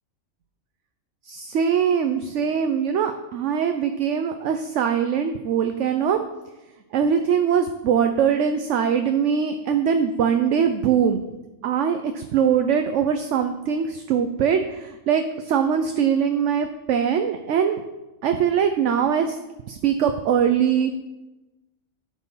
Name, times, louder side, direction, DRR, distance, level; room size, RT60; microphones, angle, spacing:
voice 1, 1.3-6.2 6.9-11.2 11.6-17.8 18.2-19.4 19.7-20.9, right 7 dB, 65° right, 7 dB, 1.0 m, -22 dB
9.2 x 8.2 x 5.6 m, 1.0 s
omnidirectional pair, 1.4 m